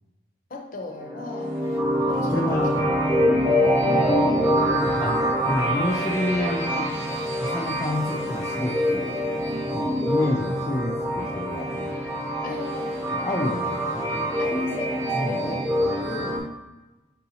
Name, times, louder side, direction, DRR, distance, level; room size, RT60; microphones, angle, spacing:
voice 1, 0.5-1.6 2.1-2.8 3.5-4.3 12.4-13.0 13.3-13.6 14.4-15.7 16.0-16.4, left 2 dB, 45° left, 2 dB, 0.6 m, -37 dB
sound 1, 1.0-16.4, equal, 15° right, 0.9 m, -25 dB
voice 2, 2.3-2.7 3.1-3.6 4.5-5.2 5.5-6.9 7.4-9.1 9.7-12.0 13.1-14.4 15.2-15.4 15.8-16.1, left 1 dB, 15° left, -2 dB, 0.3 m, -29 dB
4.6 x 4.0 x 2.8 m, 1.1 s
head